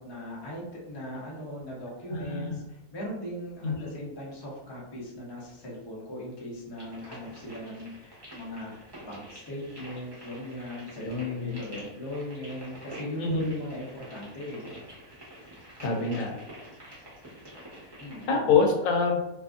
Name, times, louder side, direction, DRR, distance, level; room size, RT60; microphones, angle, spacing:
voice 1, 0.0-14.7 18.0-18.5, left 1 dB, 40° left, -5 dB, 0.3 m, -39 dB
voice 2, 2.1-2.6 3.6-4.1 11.0-11.6 13.2-13.5 15.8-16.4 18.3-19.2, left 5 dB, 80° left, 2 dB, 1.0 m, -26 dB
sound 1, 6.8-18.3, equal, 20° right, 0.7 m, -47 dB
2.7 x 2.5 x 2.4 m, 0.93 s
omnidirectional pair, 1.6 m